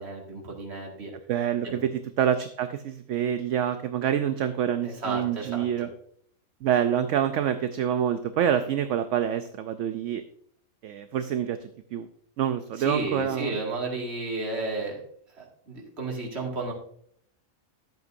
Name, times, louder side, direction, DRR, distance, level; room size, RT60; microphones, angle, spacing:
voice 1, 0.0-1.1 1.6-1.8 4.8-5.9 12.8-15.0 15.3-16.7, right 2 dB, 50° right, -1 dB, 2.3 m, -33 dB
voice 2, 1.3-5.9 6.6-10.2 10.8-12.1 12.4-13.5, right 9 dB, 65° right, 10 dB, 0.8 m, -26 dB
12.0 x 8.1 x 2.6 m, 0.65 s
omnidirectional pair, 1.5 m